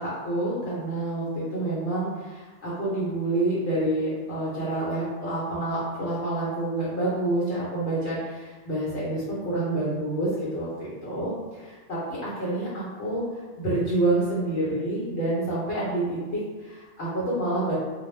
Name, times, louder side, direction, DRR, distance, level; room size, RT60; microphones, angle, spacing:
voice 1, 0.0-17.7, right 2 dB, 70° left, -7 dB, 1.0 m, -28 dB
2.4 x 2.1 x 3.1 m, 1.3 s
omnidirectional pair, 1.2 m